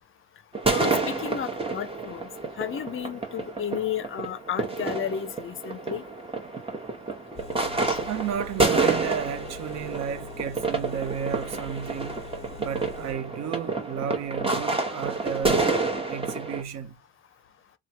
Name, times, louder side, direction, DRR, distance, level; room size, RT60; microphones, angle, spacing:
sound 1, 0.5-16.6, right 3 dB, 20° right, 1.0 m, -29 dB
voice 1, 0.7-2.3 2.6-6.0 7.9-8.0, left 9 dB, 45° left, 0.6 m, -33 dB
Engine, 7.4-13.1, left 4 dB, 20° left, 1.0 m, -43 dB
voice 2, 8.1-12.3 12.6-15.7 16.1-17.0, right 8 dB, 60° right, 0.6 m, -33 dB
3.2 x 2.2 x 2.7 m
cardioid pair, 90°, 30 cm